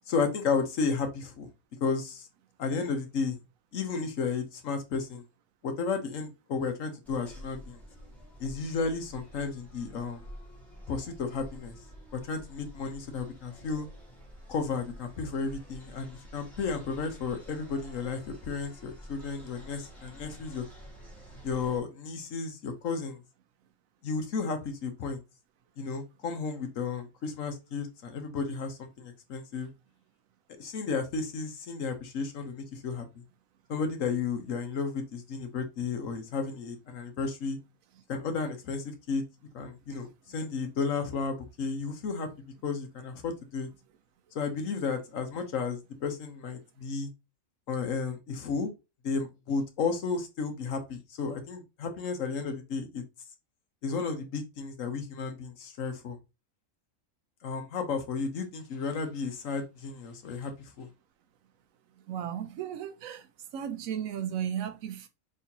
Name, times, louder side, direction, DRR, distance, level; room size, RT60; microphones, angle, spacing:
voice 1, 0.1-1.5 1.8-2.3 2.6-3.4 3.7-5.2 5.6-7.8 8.4-10.2 10.9-11.7 12.1-13.9 14.5-20.6 21.4-23.2 24.0-25.2 25.8-29.7 30.6-33.2 33.7-37.6 38.1-39.2 39.5-42.3 42.6-43.7 44.3-47.1 47.7-48.7 49.0-53.0 53.8-56.2 57.4-60.9, left 5 dB, 75° left, 1.3 m, -33 dB
sound 1, 7.0-21.8, equal, ahead, 1.8 m, -49 dB
voice 2, 62.0-63.3 63.5-65.1, right 9 dB, 85° right, 1.1 m, -35 dB
4.1 x 3.7 x 2.8 m
omnidirectional pair, 1.4 m